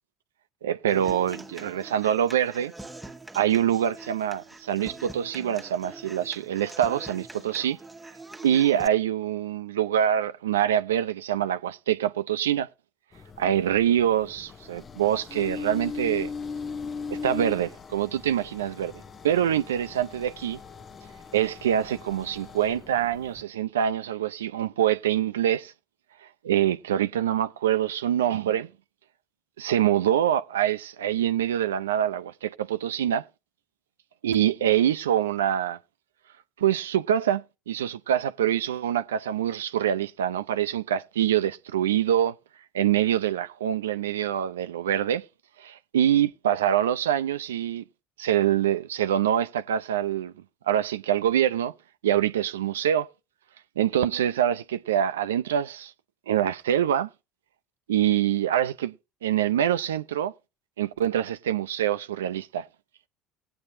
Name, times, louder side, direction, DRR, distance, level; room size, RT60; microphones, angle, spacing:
voice 1, 0.6-2.7 3.3-7.8 8.4-12.7 13.4-16.3 17.1-18.9 19.2-20.6 21.3-25.7 26.4-28.7 29.6-33.2 34.2-35.8 36.6-42.3 42.7-45.2 45.6-47.8 48.2-50.3 50.7-51.7 52.0-53.1 53.8-55.9 56.3-57.1 57.9-58.9 59.2-60.3 60.8-62.7, right 10 dB, 80° right, 0.5 m, -25 dB
Human voice / Acoustic guitar, 0.9-8.9, right 2 dB, 10° right, 1.2 m, -44 dB
sound 1, 13.1-23.4, left 5 dB, 35° left, 0.7 m, -39 dB
19.0 x 8.7 x 2.7 m
hypercardioid pair, 70°, 0 cm